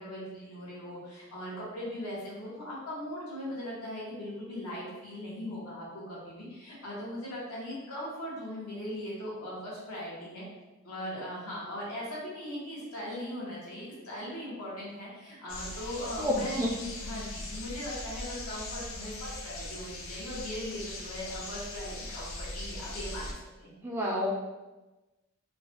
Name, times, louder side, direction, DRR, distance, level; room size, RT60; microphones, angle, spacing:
voice 1, 0.0-10.4 10.8-23.3 23.6-23.8, left 1 dB, 80° left, -6 dB, 1.3 m, -39 dB
sound 1, 15.5-23.3, left 2 dB, 60° left, 0.6 m, -40 dB
voice 2, 16.2-16.7 23.8-24.3, left 1 dB, 10° right, -3 dB, 0.3 m, -29 dB
3.7 x 2.3 x 2.9 m, 1.1 s
head